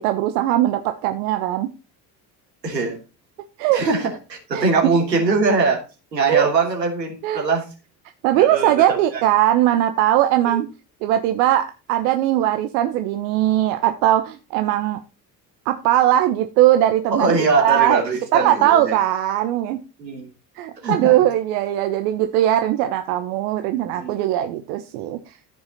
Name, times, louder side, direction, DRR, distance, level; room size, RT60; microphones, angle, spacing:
voice 1, 0.0-1.7 3.6-3.8 4.5-4.6 6.3-6.5 7.2-7.5 8.2-10.7 11.0-15.0 15.6-18.0 18.3-19.8 20.5-25.4, right 13 dB, 65° right, 8 dB, 1.1 m, -19 dB
voice 2, 2.6-3.0 3.7-5.8 6.1-7.6 8.4-9.2 10.4-10.6 17.1-19.0 20.0-20.3 20.8-21.1 23.9-24.2, right 4 dB, 90° right, 1 dB, 3.1 m, -22 dB
14.5 x 5.9 x 4.2 m, 0.31 s
hypercardioid pair, 60°, 48 cm